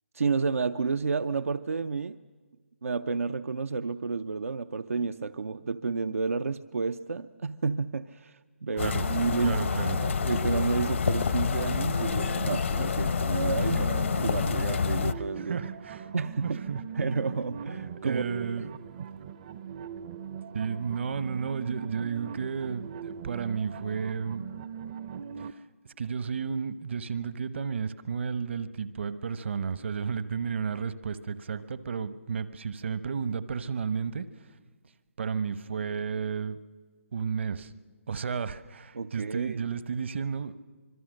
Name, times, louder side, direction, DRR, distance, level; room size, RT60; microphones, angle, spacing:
voice 1, 0.1-2.2 2.8-9.7 10.0-15.6 16.1-16.6 17.0-18.2 38.9-39.7, right 4 dB, 85° right, 8 dB, 0.6 m, -31 dB
sound 1, 8.7-25.5, right 8 dB, 30° right, 0.6 m, -41 dB
sound 2, 8.8-15.1, left 6 dB, 60° left, 0.9 m, -28 dB
voice 2, 9.4-10.0 13.7-13.8 15.4-16.1 16.4-16.8 18.0-19.1 20.5-24.5 25.4-25.6 26.0-34.3 35.2-36.6 37.1-37.7 38.1-40.5, right 6 dB, 55° right, 14 dB, 1.0 m, -32 dB
25.5 x 22.0 x 6.5 m, 1.4 s
hypercardioid pair, 160°, 7 cm